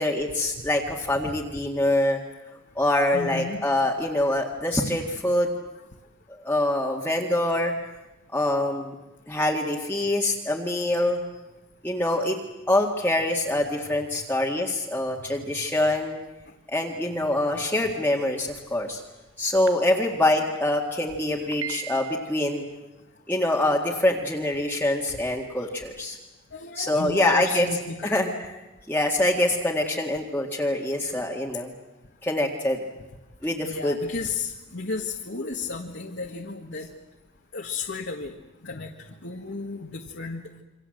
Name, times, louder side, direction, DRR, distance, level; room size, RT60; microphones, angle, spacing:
voice 1, 0.0-2.2 2.8-5.5 6.3-7.7 8.3-8.9 9.3-11.2 11.8-12.4 12.7-16.2 16.7-19.0 19.4-22.6 23.3-26.2 26.8-27.7 28.0-28.3 28.9-31.7 32.2-32.8 33.4-34.0, left 1 dB, 10° left, -2 dB, 1.9 m, -25 dB
voice 2, 3.1-3.6 4.2-4.3 25.6-25.7 26.5-28.2 33.6-36.9 37.5-38.3 38.6-38.9 39.2-40.4, left 4 dB, 55° left, 1 dB, 1.7 m, -33 dB
sound 1, 18.6-18.8 19.7-19.8 20.0-20.1 20.5-20.6 21.3-22.7, right 11 dB, 75° right, 1.3 m, -37 dB
28.0 x 25.0 x 7.8 m, 1.0 s
head